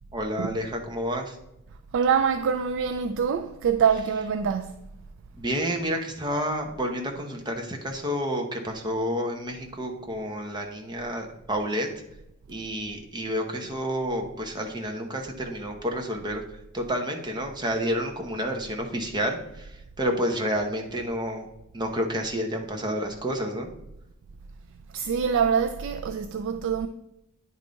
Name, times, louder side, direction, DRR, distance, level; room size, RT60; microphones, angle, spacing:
voice 1, 0.1-1.3 5.4-11.9 12.5-16.4 16.7-19.7 20.0-21.5 21.7-23.7, equal, 20° right, 0.9 m, -29 dB
voice 2, 1.9-4.8 24.9-26.9, right 7 dB, 60° right, 0.3 m, -25 dB
9.7 x 3.6 x 3.9 m
head